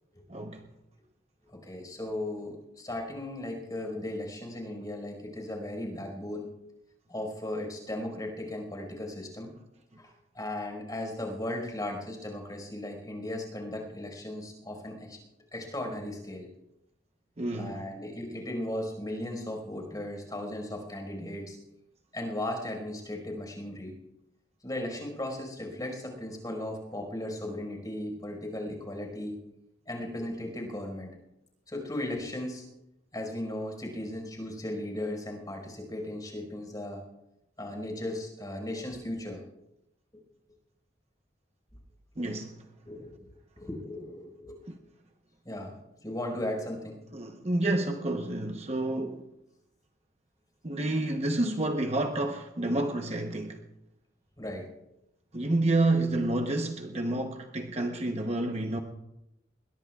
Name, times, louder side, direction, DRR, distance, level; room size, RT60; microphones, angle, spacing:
voice 1, 0.3-0.6 17.4-17.8 42.2-42.5 44.7-44.8 47.1-49.3 50.6-53.6 55.3-58.8, right 2 dB, 35° right, 1.0 m, -29 dB
voice 2, 1.5-6.5 7.1-9.5 10.0-15.2 15.5-16.5 17.5-21.6 22.1-23.9 24.6-29.4 29.9-31.1 31.7-32.6 33.1-37.0 37.6-39.4 42.8-43.2 43.6-44.6 45.4-45.8 46.0-47.0 54.4-54.7, left 1 dB, 20° left, 5.0 m, -36 dB
22.5 x 21.0 x 2.4 m
head